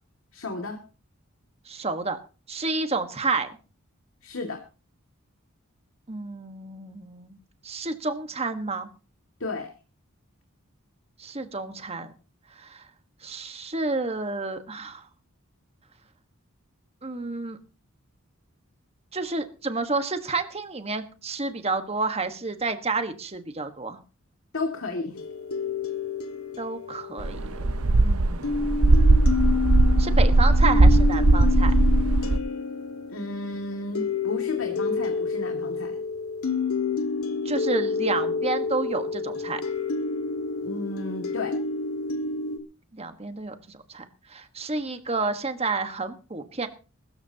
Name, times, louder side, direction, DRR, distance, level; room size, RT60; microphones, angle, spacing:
voice 1, 0.3-0.8 4.2-4.6 9.4-9.7 24.5-25.2 33.1-36.0 40.6-41.5, left 2 dB, 65° left, 3 dB, 2.3 m, -33 dB
voice 2, 1.7-2.2 2.5-3.5 6.1-7.4 7.6-8.9 11.2-12.1 12.6-12.8 13.2-15.0 17.0-17.6 19.1-24.0 26.6-27.5 28.0-28.7 30.0-31.7 37.4-39.6 42.9-44.0 44.3-46.7, right 3 dB, 30° right, 8 dB, 1.4 m, -30 dB
sound 1, 25.2-28.0 28.4-42.6, left 4 dB, 85° left, 2.0 m, -29 dB
sound 2, 27.2-32.4, right 2 dB, 75° right, 0.8 m, -18 dB
21.5 x 13.5 x 2.9 m, 0.35 s
head